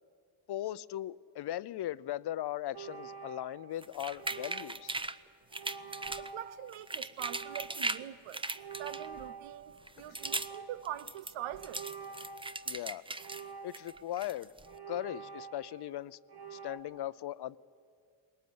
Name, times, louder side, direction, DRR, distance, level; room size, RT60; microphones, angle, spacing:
voice 1, 0.5-4.9 10.1-10.2 12.7-13.0 13.6-14.5 14.9-16.2 16.5-17.6, left 13 dB, 55° left, 0.6 m, -38 dB
sound 1, 2.7-3.8 4.2-5.0 5.5-6.6 7.2-8.0 8.5-9.8 10.2-11.0 11.5-12.6 13.2-14.1 14.6-15.9 16.3-16.8, right 6 dB, 55° right, 1.8 m, -47 dB
sound 2, 3.8-5.2 5.5-6.3 6.7-8.0 8.3-9.3 9.8-10.6 10.8-13.4 13.7-14.7, right 2 dB, 10° right, 0.7 m, -38 dB
voice 2, 6.2-8.4 8.8-11.8, right 12 dB, 85° right, 0.9 m, -43 dB
20.5 x 18.5 x 9.5 m
cardioid pair, 75°, 47 cm